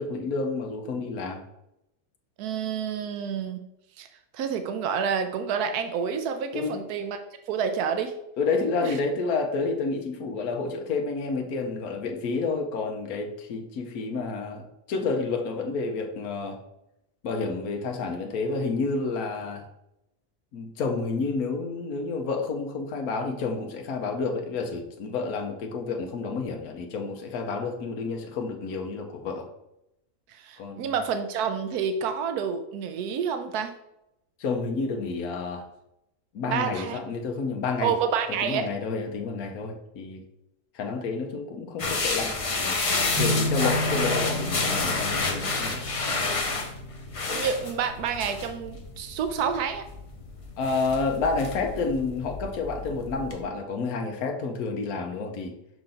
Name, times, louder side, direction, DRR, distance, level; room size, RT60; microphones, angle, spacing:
voice 1, 0.0-1.4 6.5-6.8 8.4-16.6 17.2-19.7 20.5-29.5 30.6-30.9 34.4-35.7 36.3-37.9 38.4-40.2 40.7-42.3 42.6-42.8 43.2-45.9 50.6-55.5, left 4 dB, 75° left, 3 dB, 1.3 m, -30 dB
voice 2, 2.4-3.6 4.0-4.1 4.3-7.2 7.5-8.1 8.8-9.0 30.3-33.7 36.5-37.0 37.8-38.7 47.3-49.8, right 7 dB, 85° right, 8 dB, 1.1 m, -28 dB
sound 1, 41.8-53.4, left 3 dB, 35° left, 0.5 m, -30 dB
sound 2, 43.1-50.3, equal, 15° right, 1.3 m, -34 dB
5.8 x 5.5 x 3.8 m, 0.84 s
omnidirectional pair, 1.6 m